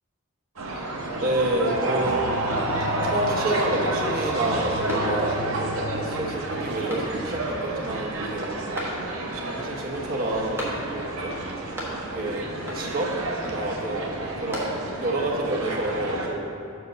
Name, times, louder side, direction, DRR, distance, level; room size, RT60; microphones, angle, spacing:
sound 1, 0.6-16.3, right 2 dB, 70° right, 0.9 m, -30 dB
voice 1, 1.2-2.3 3.0-8.5 9.1-11.4 12.1-13.2 13.4-16.6, right 1 dB, 45° right, -2 dB, 1.0 m, -29 dB
sound 2, 4.9-5.6 6.0-6.1 6.9-7.5 8.7-9.4 10.6-11.2 11.4-12.3 12.7-13.2 14.1-15.1, equal, 10° right, 1.2 m, -36 dB
5.3 x 4.8 x 6.3 m, 2.7 s
head